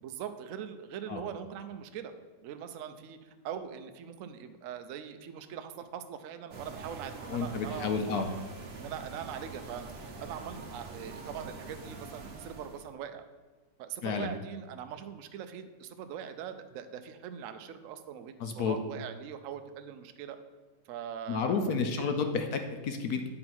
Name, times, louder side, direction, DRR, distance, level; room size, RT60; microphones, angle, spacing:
voice 1, 0.0-2.1 2.4-8.2 8.8-13.3 13.8-20.4 20.9-22.3, right 8 dB, 80° right, 8 dB, 0.7 m, -42 dB
sound 1, 6.5-12.9, right 3 dB, 50° right, 0.8 m, -45 dB
voice 2, 7.3-8.2 14.0-14.3 18.4-18.8 21.3-23.3, left 5 dB, 70° left, 5 dB, 1.0 m, -31 dB
8.7 x 3.9 x 6.0 m, 1.3 s
omnidirectional pair, 2.0 m